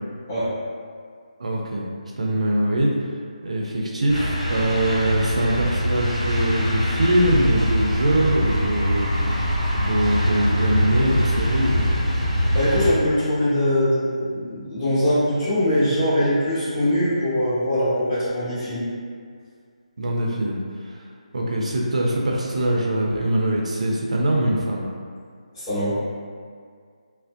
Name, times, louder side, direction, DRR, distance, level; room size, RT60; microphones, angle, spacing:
voice 1, 1.4-1.9 2.1-2.9 3.4-11.9 20.0-20.6 20.8-21.0 21.3-24.9, right 1 dB, 60° right, -2 dB, 0.4 m, -23 dB
sound 1, 4.1-12.9, equal, 60° left, 1.3 m, -23 dB
voice 2, 12.5-18.8 25.5-26.0, left 1 dB, 25° left, -13 dB, 1.2 m, -22 dB
2.5 x 2.1 x 2.4 m, 2.1 s
figure-of-eight pair, 150°, 4 cm